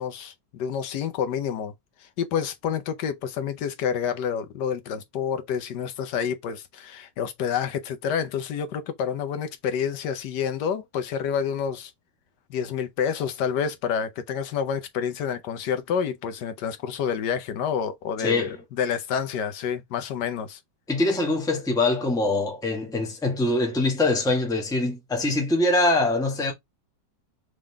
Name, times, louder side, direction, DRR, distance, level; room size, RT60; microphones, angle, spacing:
voice 1, 0.0-1.7 2.0-11.9 12.5-18.5 18.8-20.6, left 7 dB, 75° left, 1.3 m, -28 dB
voice 2, 18.2-18.6 20.9-26.5, left 2 dB, 5° left, 0.8 m, -23 dB
3.7 x 3.6 x 3.3 m
omnidirectional pair, 1.9 m